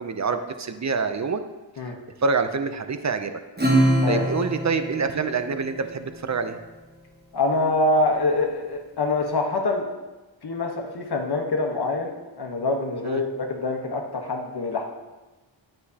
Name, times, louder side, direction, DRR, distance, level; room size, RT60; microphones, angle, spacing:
voice 1, 0.0-1.4 2.2-3.3 4.1-6.6 13.0-13.2, right 4 dB, 35° right, 9 dB, 0.5 m, -26 dB
Acoustic guitar / Strum, 3.6-6.5, right 1 dB, 20° right, 1.2 m, -24 dB
voice 2, 7.3-9.9 10.4-14.8, left 2 dB, 55° left, 2 dB, 1.2 m, -25 dB
9.4 x 6.6 x 2.8 m, 1.1 s
wide cardioid pair, 85°, 47 cm